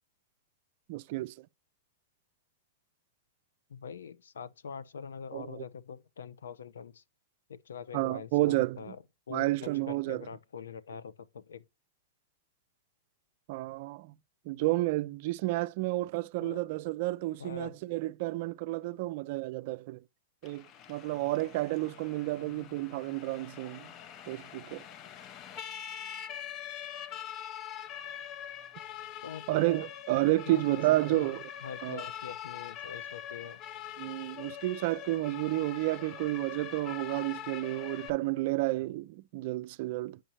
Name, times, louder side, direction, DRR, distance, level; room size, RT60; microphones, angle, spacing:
voice 1, 0.9-1.3 5.3-5.6 7.9-8.8 9.3-10.2 13.5-14.1 14.5-20.0 20.4-23.9 24.3-24.8 29.5-31.4 31.8-32.0 34.0-40.2, right 18 dB, 55° right, 0.3 m, -31 dB
voice 2, 3.7-7.0 7.5-9.6 9.8-11.7 16.4-16.6 17.4-17.8 29.2-29.5 30.5-30.8 31.1-31.3 31.6-33.6, left 7 dB, 85° left, 0.6 m, -44 dB
Siren, 20.4-38.1, left 10 dB, 35° left, 0.6 m, -44 dB
8.8 x 5.1 x 2.8 m
hypercardioid pair, 120°, 0 cm